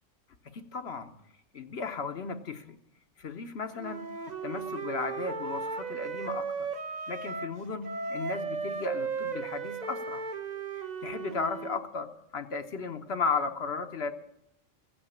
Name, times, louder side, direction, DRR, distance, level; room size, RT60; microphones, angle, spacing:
voice 1, 0.4-1.1 1.5-2.8 3.2-4.0 4.4-6.7 7.1-7.8 8.1-10.2 10.7-14.1, left 4 dB, 55° left, 7 dB, 1.1 m, -35 dB
Wind instrument woodwind instrument, 3.8-7.6 7.8-11.8, right 5 dB, 40° right, 0.8 m, -36 dB
15.5 x 8.8 x 8.6 m, 0.82 s
omnidirectional pair, 1.3 m